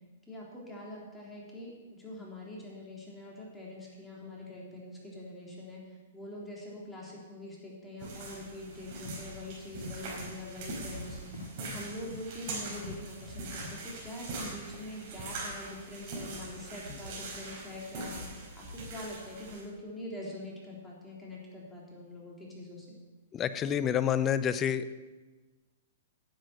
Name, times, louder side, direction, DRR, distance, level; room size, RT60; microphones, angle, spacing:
voice 1, 0.3-23.0, left 1 dB, 10° left, -4 dB, 3.3 m, -44 dB
sound 1, 8.0-19.6, right 2 dB, 50° right, 4.7 m, -42 dB
sound 2, 8.7-14.4, left 1 dB, 65° left, 4.3 m, -48 dB
voice 2, 23.3-24.9, left 9 dB, 25° left, 13 dB, 0.6 m, -28 dB
10.5 x 7.6 x 7.8 m, 1.3 s
hypercardioid pair, 130°, 0 cm